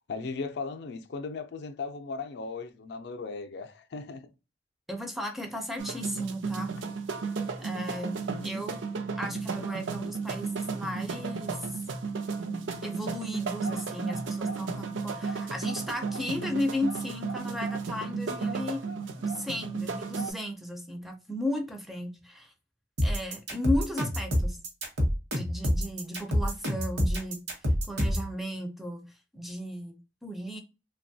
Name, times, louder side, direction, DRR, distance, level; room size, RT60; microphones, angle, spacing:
voice 1, 0.1-4.3, left 4 dB, 60° left, 0.4 m, -37 dB
voice 2, 4.9-6.7 7.6-8.8 9.2-11.8 12.8-18.8 19.3-22.5 23.0-24.6 25.3-27.4 27.9-29.1 29.3-30.6, left 1 dB, ahead, 0.4 m, -35 dB
sound 1, 5.8-20.3, right 4 dB, 85° right, 0.5 m, -34 dB
sound 2, 23.0-28.3, equal, 60° right, 0.9 m, -27 dB
2.9 x 2.2 x 2.6 m
head